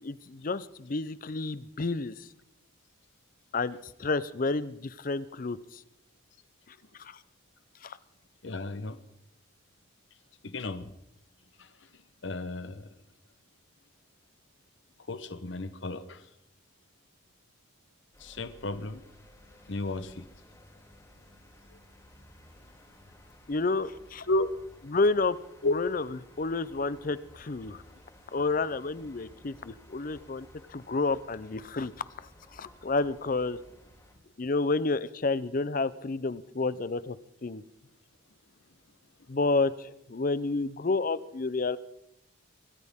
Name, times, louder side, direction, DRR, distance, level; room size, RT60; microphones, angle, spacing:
voice 1, 0.0-2.3 3.5-5.8 7.0-7.2 7.8-8.0 23.5-24.3 24.9-25.4 25.7-26.0 26.4-27.8 28.3-31.9 32.2-33.6 34.4-37.2 37.4-37.6 39.3-41.8, left 3 dB, 40° left, 16 dB, 0.5 m, -30 dB
voice 2, 8.4-9.0 10.4-10.9 11.6-11.7 12.2-12.9 15.1-16.3 18.2-19.0 19.7-20.2 24.3-24.5 25.6-25.7, left 2 dB, 60° left, 12 dB, 0.9 m, -32 dB
sound 1, 18.1-34.1, left 1 dB, 15° left, 3.7 m, -56 dB
24.5 x 14.0 x 3.6 m, 0.83 s
head